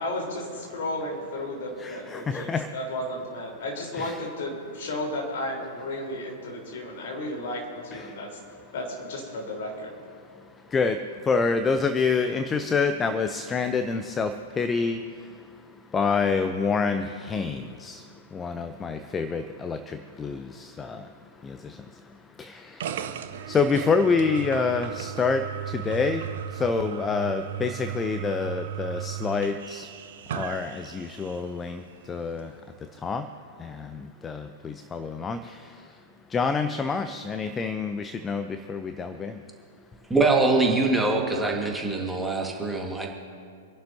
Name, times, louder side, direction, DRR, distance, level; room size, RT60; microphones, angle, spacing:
voice 1, 0.0-8.4 8.7-9.9, left 1 dB, 55° left, 3.9 m, -33 dB
voice 2, 11.3-14.3 14.6-15.0 15.9-17.0 17.3-17.5 18.4-19.8 20.2-20.3 23.5-25.4 25.9-26.2 26.6-27.7 28.0-29.8 30.4-30.7 31.0-31.7 32.1-32.4 33.0-33.2 34.9-35.4 36.3-38.0 38.2-38.4 38.7-39.3, left 5 dB, 15° left, 0.6 m, -25 dB
sound 1, 22.8-31.5, right 10 dB, 55° right, 0.8 m, -36 dB
voice 3, 40.1-43.1, right 3 dB, 5° right, 1.7 m, -23 dB
27.5 x 11.5 x 2.8 m
figure-of-eight pair, 105°, 0 cm